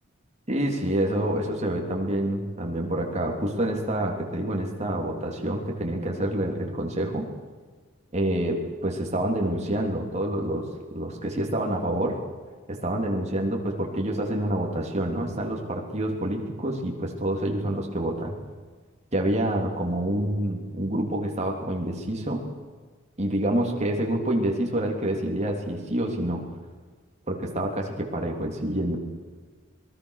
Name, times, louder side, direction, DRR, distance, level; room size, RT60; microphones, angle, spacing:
voice 1, 0.5-7.3 8.1-10.7 10.9-12.2 12.7-18.3 19.1-22.4 23.2-26.4 27.3-29.0, right 1 dB, 35° right, 1 dB, 3.3 m, -27 dB
26.5 x 20.5 x 6.6 m, 1.5 s
head